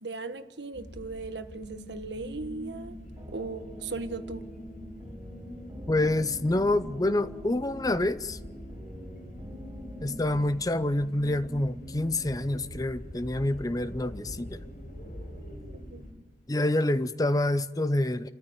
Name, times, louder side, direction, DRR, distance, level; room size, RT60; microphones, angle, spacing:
voice 1, 0.0-3.0 3.3-4.4 15.9-16.0, right 3 dB, 80° right, 1.5 m, -37 dB
sound 1, 0.7-16.1, equal, 55° left, 5.2 m, -44 dB
sound 2, 3.2-10.5, equal, 20° right, 4.6 m, -46 dB
voice 2, 5.9-8.4 10.0-14.6 16.5-18.3, left 1 dB, 20° left, 0.6 m, -27 dB
28.5 x 14.0 x 9.3 m
head